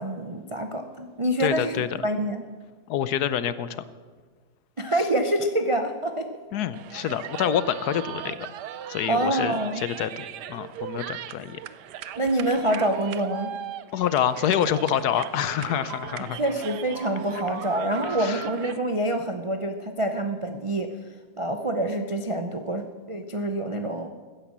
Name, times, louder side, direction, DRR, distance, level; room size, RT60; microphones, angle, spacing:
voice 1, 0.0-2.4 4.8-6.3 9.1-9.8 12.2-13.5 16.3-20.9 21.4-24.1, right 1 dB, 50° right, 6 dB, 0.3 m, -26 dB
voice 2, 1.4-1.9 2.9-3.8 6.5-8.5 8.9-11.6 13.9-16.4 18.0-18.4, left 9 dB, 70° left, 15 dB, 1.2 m, -27 dB
sound 1, 6.7-18.8, right 10 dB, 80° right, 1.3 m, -38 dB
15.5 x 10.0 x 7.4 m, 1.5 s
omnidirectional pair, 1.8 m